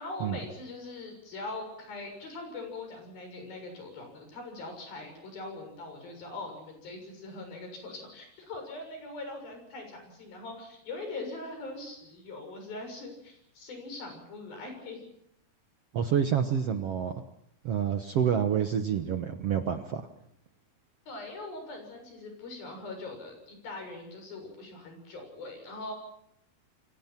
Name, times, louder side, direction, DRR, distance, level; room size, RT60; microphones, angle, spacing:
voice 1, 0.0-15.1 21.1-25.9, left 2 dB, 75° left, 4 dB, 8.6 m, -41 dB
voice 2, 15.9-17.1 17.6-20.1, right 8 dB, 60° right, 7 dB, 1.7 m, -28 dB
30.0 x 23.0 x 6.0 m, 0.74 s
omnidirectional pair, 4.2 m